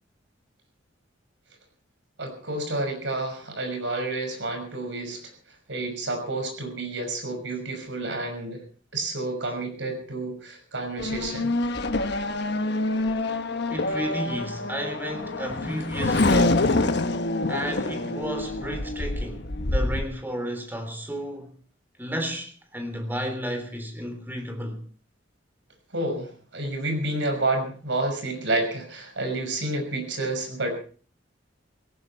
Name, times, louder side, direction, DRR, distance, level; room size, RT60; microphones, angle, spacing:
voice 1, 2.2-5.2 5.7-8.6 8.9-11.5 25.9-30.8, right 2 dB, 70° right, 5.8 m, -29 dB
Race car auto racing / Accelerating revving vroom, 11.0-20.1, left 2 dB, 60° left, 1.3 m, -26 dB
voice 2, 13.7-16.6 17.5-21.5 22.0-24.8, equal, 10° right, 3.3 m, -32 dB
17.5 x 17.0 x 4.5 m
head